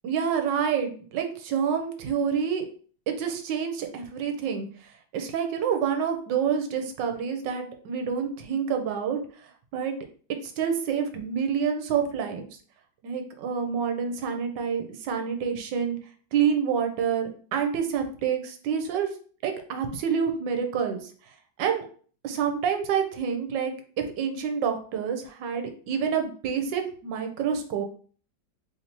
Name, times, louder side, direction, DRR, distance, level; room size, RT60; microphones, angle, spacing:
voice 1, 0.0-2.7 3.1-4.7 5.1-9.9 10.4-12.5 13.0-16.0 16.3-19.1 19.4-21.1 21.6-21.8 22.2-23.7 24.2-27.8, right 7 dB, 75° right, 5 dB, 1.3 m, -28 dB
3.4 x 2.7 x 4.3 m, 0.44 s
omnidirectional pair, 2.0 m